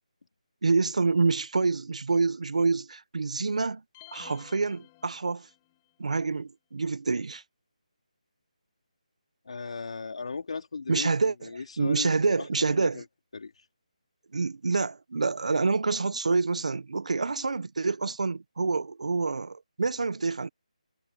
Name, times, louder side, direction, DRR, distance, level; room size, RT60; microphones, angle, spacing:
voice 1, 0.6-3.8 4.1-5.5 6.0-7.4 10.9-11.5 11.8-13.0 14.3-20.5, right 4 dB, 60° right, 1.3 m, -27 dB
sound 1, 3.9-5.8, left 20 dB, 15° left, 3.5 m, -52 dB
voice 2, 9.5-11.1 11.4-13.0 13.3-13.5, left 4 dB, 55° left, 3.8 m, -37 dB
hypercardioid pair, 175°, 4 cm